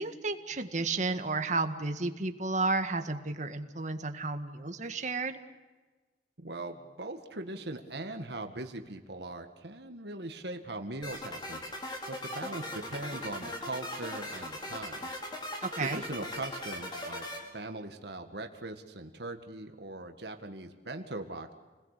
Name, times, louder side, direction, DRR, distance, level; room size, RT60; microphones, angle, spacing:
voice 1, 0.0-5.4 15.6-16.0, right 3 dB, 45° right, 7 dB, 1.8 m, -32 dB
voice 2, 6.4-11.6 12.1-15.2 15.8-21.5, right 2 dB, 65° right, 5 dB, 1.9 m, -40 dB
sound 1, 11.0-17.4, left 1 dB, 25° left, 4.9 m, -39 dB
29.5 x 20.5 x 8.5 m, 1.3 s
head